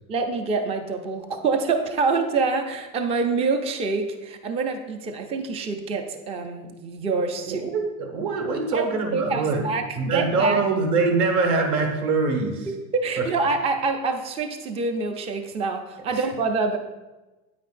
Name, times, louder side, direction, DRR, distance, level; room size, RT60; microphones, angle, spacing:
voice 1, 0.1-7.6 8.7-8.8 9.1-10.6 12.9-16.8, right 4 dB, 15° right, 6 dB, 0.4 m, -26 dB
voice 2, 7.4-9.7 10.0-12.7 13.2-13.3 16.1-16.2, right 4 dB, 45° right, 3 dB, 1.6 m, -24 dB
9.3 x 8.7 x 2.5 m, 1.1 s
supercardioid pair, 140°, 42 cm